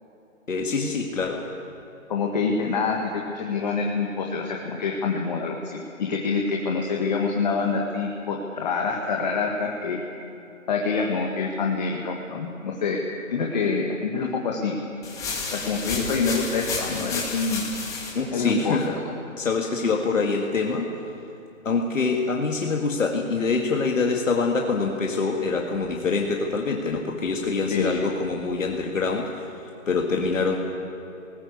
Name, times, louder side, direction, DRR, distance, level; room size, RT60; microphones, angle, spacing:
voice 1, 0.5-1.5 18.1-19.0 19.4-21.0 21.6-30.6, left 4 dB, 70° left, 1 dB, 2.2 m, -25 dB
voice 2, 2.1-3.0 3.3-10.0 10.7-13.0 13.3-14.8 15.5-17.6 18.3-19.0 27.7-27.9, left 4 dB, 30° left, 0 dB, 1.7 m, -26 dB
sound 1, 15.0-18.1, left 4 dB, 10° left, 2.5 m, -31 dB
20.0 x 19.5 x 8.3 m, 2.9 s
hypercardioid pair, 160°, 40 cm